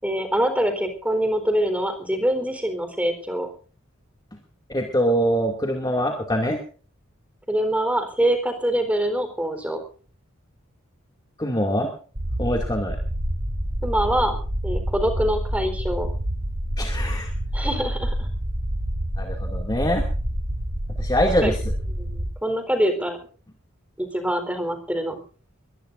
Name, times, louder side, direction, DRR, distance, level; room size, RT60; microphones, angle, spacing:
voice 1, 0.0-3.5 7.5-9.8 13.8-16.1 17.5-18.3 21.4-21.5 22.0-23.3 24.0-25.2, right 1 dB, 5° right, 7 dB, 4.0 m, -24 dB
voice 2, 4.7-6.6 11.4-11.9 12.4-13.0 16.8-17.3 19.2-20.0 21.0-21.7, equal, 20° left, 1 dB, 2.4 m, -23 dB
sound 1, 12.1-22.3, equal, 60° right, 5.6 m, -27 dB
23.5 x 19.0 x 2.6 m, 0.39 s
head